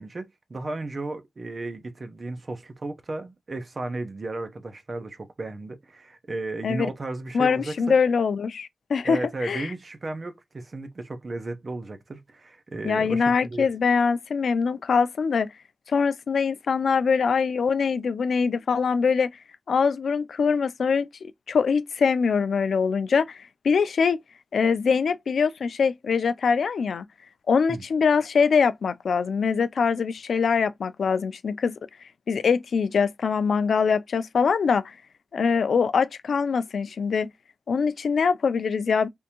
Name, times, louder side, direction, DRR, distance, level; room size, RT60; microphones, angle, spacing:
voice 1, 0.0-8.0 9.0-13.7 27.7-27.8, right 2 dB, 35° right, 0.5 m, -34 dB
voice 2, 7.3-9.7 12.8-15.5 15.9-19.3 19.7-24.2 24.5-27.0 27.5-31.8 32.3-34.9 35.3-37.3 37.7-39.1, left 5 dB, 85° left, 0.3 m, -23 dB
3.4 x 2.6 x 2.8 m
wide cardioid pair, 175°, 0 cm